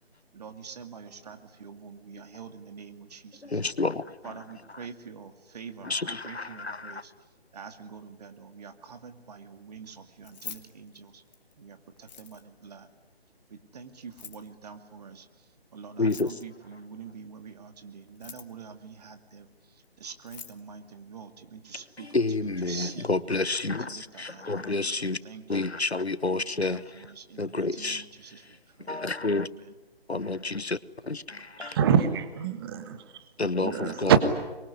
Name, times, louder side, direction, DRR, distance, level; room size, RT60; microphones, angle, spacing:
voice 1, 0.3-3.6 4.2-11.2 11.6-12.9 13.5-23.1 23.6-25.7 26.3-29.0 29.3-29.8, right 6 dB, 40° right, 2.3 m, -46 dB
voice 2, 3.5-4.1 5.8-7.0 16.0-16.3 22.1-25.2 25.5-26.8 27.4-28.0 28.9-29.5 30.1-30.8 31.0-31.8 33.4-34.1, left 3 dB, 90° left, 1.3 m, -29 dB
Keys jangling, 10.1-11.5 12.0-12.6 14.0-14.5 16.0-16.6 18.0-18.7 19.8-19.9 20.2-20.6, left 6 dB, 45° left, 2.1 m, -45 dB
voice 3, 31.6-33.0 33.6-34.2, right 8 dB, 25° right, 1.5 m, -24 dB
25.5 x 23.0 x 9.9 m
figure-of-eight pair, 145°, 31 cm